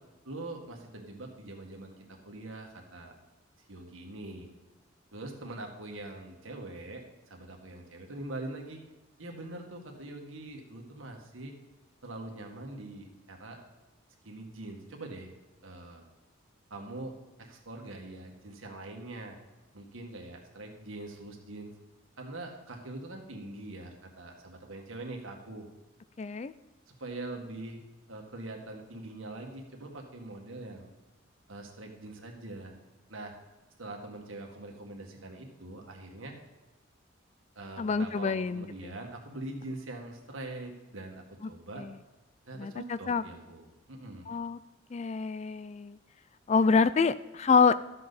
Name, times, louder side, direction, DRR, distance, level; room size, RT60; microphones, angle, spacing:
voice 1, 0.2-3.1 3.7-4.5 5.1-8.8 9.2-11.5 12.0-13.6 14.2-15.3 15.6-16.0 16.7-17.1 17.4-19.4 19.7-21.7 22.2-25.7 26.9-27.8 28.1-30.9 31.5-32.8 33.1-33.3 33.8-36.4 37.5-41.8 42.4-44.3, right 2 dB, 90° right, 2 dB, 1.8 m, -43 dB
voice 2, 26.2-26.5 37.8-38.9 41.8-41.9 42.6-43.2 44.3-44.6 44.9-46.0 46.5-47.7, left 5 dB, 35° left, 15 dB, 0.3 m, -26 dB
12.5 x 7.6 x 4.1 m, 1.2 s
head